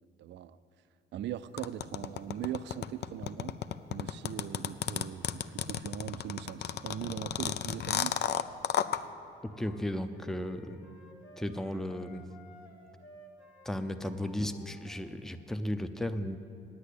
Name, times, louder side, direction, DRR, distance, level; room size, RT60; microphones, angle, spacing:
voice 1, 0.2-0.6 1.1-3.6 3.9-8.2, right 11 dB, 65° right, 14 dB, 0.4 m, -40 dB
sound 1, 1.6-9.0, left 10 dB, 60° left, 0.5 m, -32 dB
sound 2, 9.4-15.2, equal, 90° left, 1.4 m, -55 dB
voice 2, 9.6-10.9 11.4-12.3 13.6-16.4, left 1 dB, ahead, 9 dB, 0.5 m, -35 dB
9.6 x 8.2 x 8.3 m, 2.7 s
cardioid pair, 90°, 20 cm